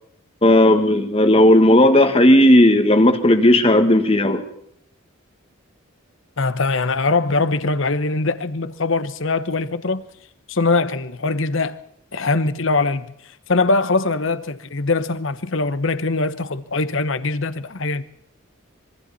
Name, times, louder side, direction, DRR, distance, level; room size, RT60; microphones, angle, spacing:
voice 1, 0.4-4.4, left 1 dB, 30° left, 1.7 m, -14 dB
voice 2, 6.4-10.1 10.5-11.8 12.1-18.0, left 3 dB, 65° left, 1.0 m, -22 dB
26.0 x 24.0 x 4.2 m
head